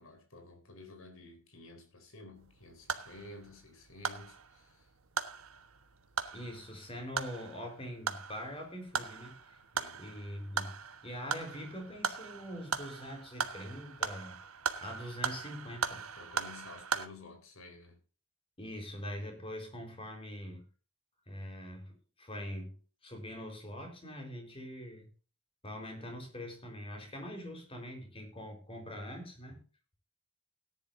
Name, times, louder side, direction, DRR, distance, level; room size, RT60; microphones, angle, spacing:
voice 1, 0.0-4.9 9.7-10.0 16.2-18.0, left 2 dB, 75° left, 4.3 m, -52 dB
sound 1, 2.4-17.1, right 5 dB, 90° right, 1.3 m, -39 dB
voice 2, 6.3-9.4 9.9-10.8 11.0-14.4 14.8-16.0 18.6-20.7 21.3-22.8 23.0-25.1 25.6-29.6, equal, 25° left, 4.1 m, -43 dB
18.0 x 10.5 x 2.7 m
head